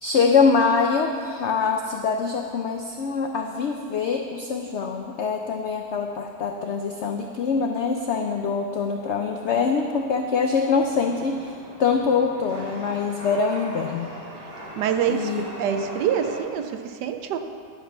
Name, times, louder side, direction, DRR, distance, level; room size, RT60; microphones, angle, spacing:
voice 1, 0.0-11.5 11.8-14.1 15.1-15.5, left 5 dB, 80° left, 3 dB, 0.6 m, -24 dB
Chatter / Subway metro underground, 2.4-16.4, right 1 dB, 25° right, 2.6 m, -43 dB
voice 2, 14.8-16.7 17.0-17.4, right 8 dB, 85° right, 7 dB, 1.2 m, -25 dB
11.0 x 5.4 x 6.1 m, 2.4 s
omnidirectional pair, 1.8 m